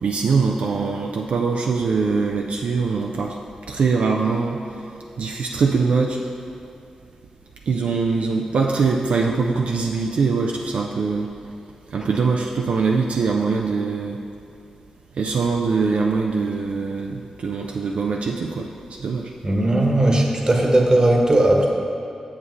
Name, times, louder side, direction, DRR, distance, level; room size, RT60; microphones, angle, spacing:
voice 1, 0.0-3.4 3.7-4.6 5.2-6.2 7.7-11.3 11.9-14.2 15.2-19.3, right 4 dB, 75° right, 0 dB, 0.4 m, -22 dB
voice 2, 19.4-21.7, right 1 dB, 35° right, 1 dB, 1.1 m, -17 dB
7.3 x 6.8 x 3.1 m, 2.5 s
supercardioid pair, 40°, 2 cm